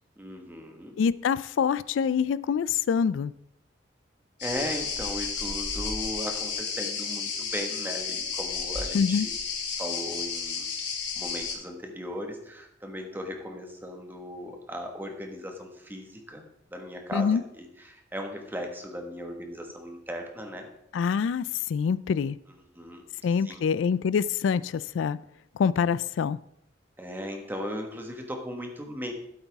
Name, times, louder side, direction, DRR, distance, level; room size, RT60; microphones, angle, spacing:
voice 1, 0.2-1.0 4.4-9.3 9.8-10.7 11.2-20.7 22.7-23.0 23.4-23.6 27.0-29.1, equal, 10° right, 3 dB, 1.5 m, -37 dB
voice 2, 1.0-3.3 8.9-9.3 17.1-17.4 20.9-22.4 23.2-25.2 25.6-26.4, left 6 dB, 85° left, 17 dB, 0.3 m, -25 dB
sound 1, 4.4-11.5, left 5 dB, 65° left, 2.7 m, -32 dB
12.5 x 8.0 x 3.6 m, 0.76 s
head